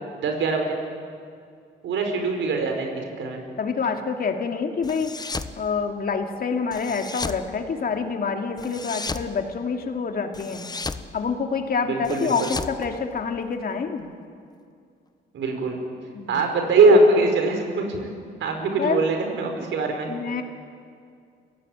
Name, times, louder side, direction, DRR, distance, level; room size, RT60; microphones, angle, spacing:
voice 1, 0.1-0.8 1.8-3.4 11.8-12.5 15.3-15.8 16.3-18.1 18.4-20.1, right 3 dB, 70° right, 4 dB, 5.0 m, -22 dB
voice 2, 3.6-5.1 5.6-10.7 11.1-14.1 16.1-16.4 18.8-19.0 20.1-20.4, left 5 dB, 50° left, 4 dB, 2.6 m, -27 dB
sound 1, 4.8-5.6 6.7-7.4 8.6-9.3 10.3-11.1 12.0-13.6, left 3 dB, 20° left, 1.1 m, -34 dB
28.5 x 16.5 x 9.1 m, 2.3 s
cardioid pair, 90°, 20 cm